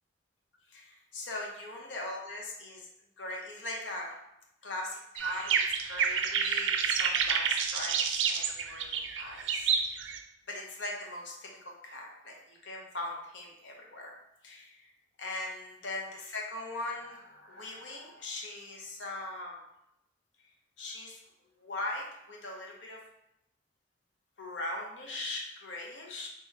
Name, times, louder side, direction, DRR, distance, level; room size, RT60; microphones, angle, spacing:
voice 1, 0.7-2.9 3.2-4.2 4.6-9.7 10.5-14.1 14.4-14.9 15.2-19.6 20.8-21.2 21.6-23.0 24.4-26.3, left 2 dB, 80° left, 0 dB, 0.8 m, -40 dB
sound 1, 5.2-10.2, right 6 dB, 90° right, 0.4 m, -29 dB
3.7 x 3.4 x 2.8 m, 0.83 s
head